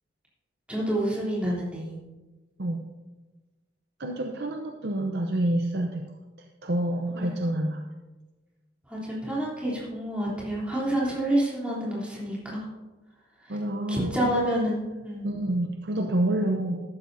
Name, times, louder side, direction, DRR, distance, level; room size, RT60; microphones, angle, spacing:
voice 1, 0.7-2.0 7.1-7.2 8.9-12.7 13.5-13.6 13.9-15.2, right 1 dB, 5° right, -7 dB, 3.3 m, -28 dB
voice 2, 4.0-6.0 6.4-7.8 13.5-14.3 15.2-16.8, right 1 dB, 65° right, 3 dB, 0.7 m, -28 dB
14.0 x 12.0 x 2.7 m, 1.2 s
head